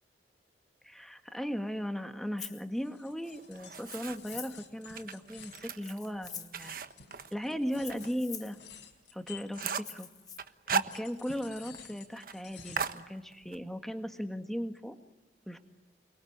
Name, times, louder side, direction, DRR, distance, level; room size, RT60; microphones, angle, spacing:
voice 1, 0.8-6.8 7.3-8.6 9.1-10.1 10.7-15.0 15.5-15.6, equal, ahead, 7 dB, 1.9 m, -37 dB
Rattle (instrument), 2.4-2.6 3.8-4.7 5.7-6.6 7.7-8.6 9.7-10.4, left 7 dB, 20° left, 1.7 m, -45 dB
sound 1, 2.7-10.2 10.7-13.0, left 6 dB, 85° left, 4.3 m, -53 dB
sound 2, 3.2-4.4 4.9-8.1 8.4-8.5 8.9-9.0 9.3-10.0 10.4-11.5 11.7-11.8 12.1-12.4 12.8-13.6, right 5 dB, 50° right, 1.3 m, -36 dB
29.5 x 22.5 x 9.0 m, 1.0 s
head